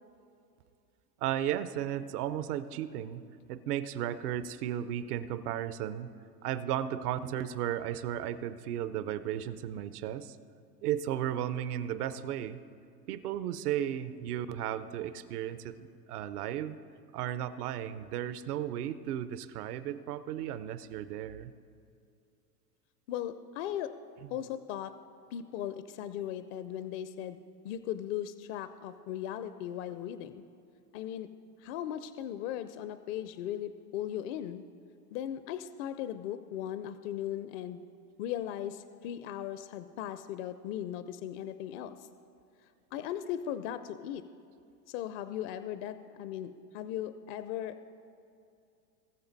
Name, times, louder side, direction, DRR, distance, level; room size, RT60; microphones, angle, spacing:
voice 1, 1.2-6.1 6.4-10.4 10.8-12.6 13.1-16.8 17.1-21.5 24.2-24.3, right 11 dB, 65° right, 13 dB, 0.8 m, -35 dB
voice 2, 23.1-23.9 24.3-24.9 25.3-30.4 30.9-31.3 31.6-34.6 35.1-37.8 38.2-42.0 42.9-44.2 44.9-47.8, left 11 dB, 45° left, 12 dB, 0.5 m, -38 dB
20.0 x 6.8 x 4.0 m, 2.5 s
hypercardioid pair, 110°, 49 cm